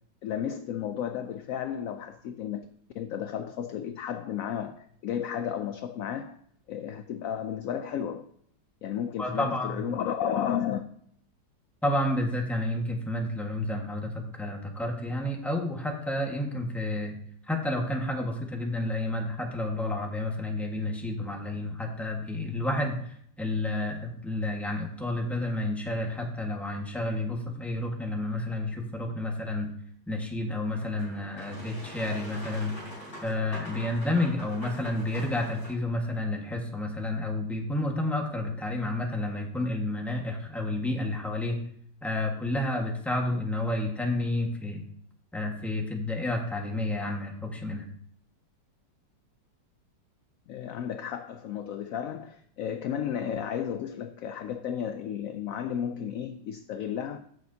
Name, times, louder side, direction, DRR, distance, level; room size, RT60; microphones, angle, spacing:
voice 1, 0.2-2.7 2.9-6.4 6.7-8.3 8.8-10.9 50.5-57.2, left 9 dB, 75° left, 9 dB, 0.7 m, -33 dB
voice 2, 9.2-9.9 11.8-17.2 17.5-29.7 30.1-32.7 33.2-41.6 42.0-44.8 45.3-47.8, left 1 dB, ahead, 0 dB, 1.3 m, -30 dB
Boat Water vehicle, 30.7-35.7, equal, 40° left, 4.4 m, -44 dB
14.5 x 6.4 x 2.8 m, 0.64 s
omnidirectional pair, 1.9 m